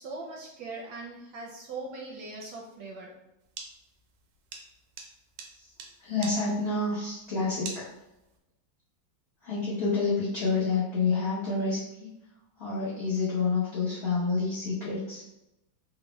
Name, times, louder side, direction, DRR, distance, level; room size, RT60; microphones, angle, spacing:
voice 1, 0.0-3.1, right 3 dB, 75° right, -1 dB, 1.0 m, -40 dB
sound 1, 3.5-8.4, right 5 dB, 90° right, 1.4 m, -44 dB
voice 2, 6.0-7.9 9.4-12.1 12.6-15.2, left 4 dB, 75° left, -8 dB, 0.6 m, -28 dB
3.6 x 2.0 x 3.0 m, 0.89 s
omnidirectional pair, 2.2 m